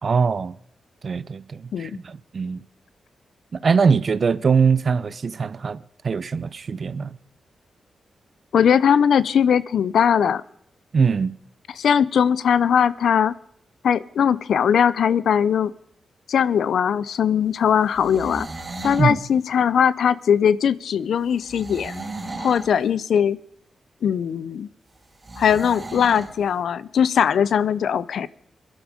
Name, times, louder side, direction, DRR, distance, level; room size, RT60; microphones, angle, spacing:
voice 1, 0.0-0.5 1.0-2.6 3.5-7.2 10.9-11.4 19.0-19.2, right 5 dB, 55° right, 0.7 m, -22 dB
voice 2, 8.5-10.4 11.8-13.3 13.8-15.7 16.3-18.5 18.8-22.0 22.4-23.4 24.0-24.7 25.4-28.3, left 8 dB, 80° left, 0.6 m, -20 dB
sound 1, 17.9-19.1 21.5-22.7 25.2-26.3, right 2 dB, 30° right, 4.6 m, -35 dB
22.5 x 11.5 x 5.2 m
cardioid pair, 80°, 0 cm